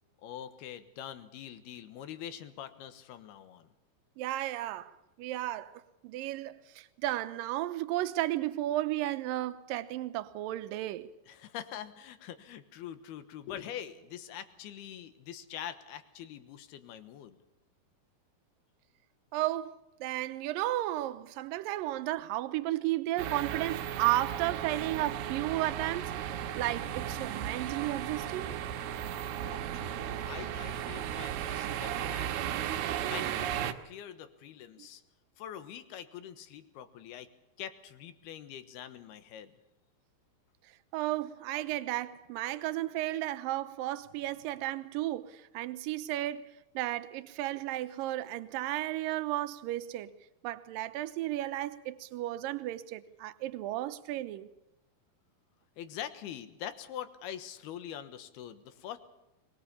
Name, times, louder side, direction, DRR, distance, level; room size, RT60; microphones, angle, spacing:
voice 1, 0.2-3.7 11.3-17.4 29.3-32.8 33.1-35.0 35.4-37.3 37.6-39.6 55.8-59.0, left 10 dB, 85° left, 3.3 m, -44 dB
voice 2, 4.2-11.1 19.3-28.6 34.8-34.9 40.9-50.1 50.4-54.5, right 15 dB, 75° right, 2.4 m, -34 dB
sound 1, 23.2-33.7, right 10 dB, 90° right, 2.9 m, -35 dB
22.5 x 20.5 x 7.1 m
omnidirectional pair, 4.4 m